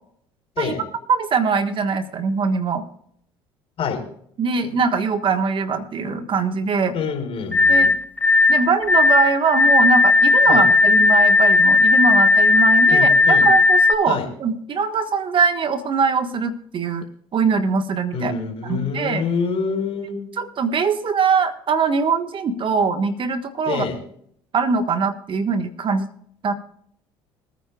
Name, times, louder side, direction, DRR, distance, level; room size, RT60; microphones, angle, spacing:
voice 1, 1.1-2.9 4.4-7.0 7.7-7.9 8.5-17.0 17.3-18.3 18.7-19.2 20.4-23.9 24.5-26.1 26.4-26.5, right 5 dB, 45° right, 8 dB, 1.4 m, -22 dB
voice 2, 6.9-7.9 10.5-10.6 12.9-13.5 14.1-14.3 18.1-20.2 23.6-24.0, left 5 dB, 55° left, 3 dB, 4.4 m, -26 dB
sound 1, 7.5-14.0, left 3 dB, 15° left, 1.2 m, -15 dB
25.5 x 9.3 x 2.4 m, 0.66 s
supercardioid pair, 75°, 12 cm